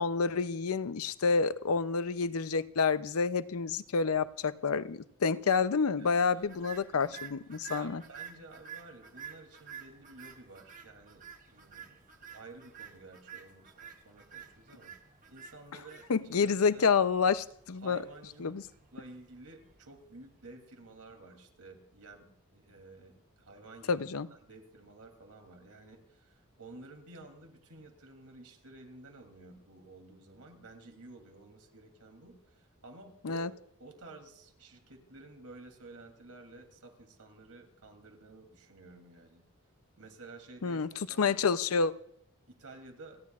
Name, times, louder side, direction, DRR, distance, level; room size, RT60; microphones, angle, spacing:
voice 1, 0.0-8.0 16.1-18.0 18.4-18.6 23.9-24.3 33.2-33.5 40.6-40.9 41.2-41.9, left 5 dB, 80° left, 14 dB, 0.6 m, -28 dB
voice 2, 6.0-6.5 6.9-7.2 7.7-14.9 15.3-16.0 16.4-16.9 17.8-18.6 18.9-33.5 33.8-39.4 40.0-41.4 42.5-43.2, right 2 dB, 90° right, 4 dB, 3.0 m, -52 dB
sound 1, 6.4-20.7, right 7 dB, 35° right, 1.2 m, -51 dB
30.0 x 10.5 x 2.4 m, 0.72 s
head